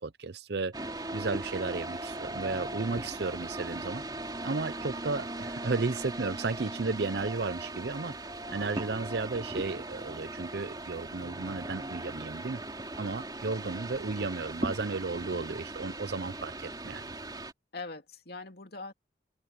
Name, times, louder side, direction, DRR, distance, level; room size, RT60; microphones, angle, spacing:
voice 1, 0.0-4.0 4.4-8.2 8.5-12.6 13.0-17.1, right 3 dB, 60° right, 0.6 m, -34 dB
sound 1, 0.7-17.5, right 2 dB, 20° right, 3.5 m, -39 dB
voice 2, 8.4-8.8 17.7-18.9, left 3 dB, 55° left, 2.8 m, -42 dB
head